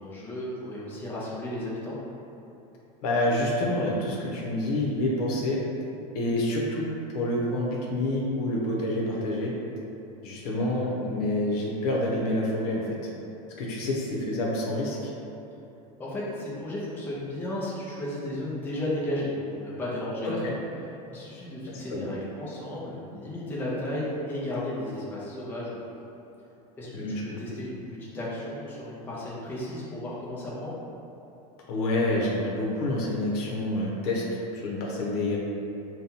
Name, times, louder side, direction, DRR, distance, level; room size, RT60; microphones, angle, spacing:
voice 1, 0.0-2.0 16.0-20.6 21.1-26.0 26.8-30.7, left 1 dB, 10° left, -7 dB, 0.5 m, -34 dB
voice 2, 3.0-5.6 6.1-9.5 10.2-13.1 13.6-15.1 20.2-20.5 21.7-22.1 26.9-27.4 31.7-34.2 34.5-35.4, left 1 dB, 70° left, -3 dB, 0.9 m, -28 dB
5.2 x 2.3 x 2.8 m, 3.0 s
supercardioid pair, 160°, 20 cm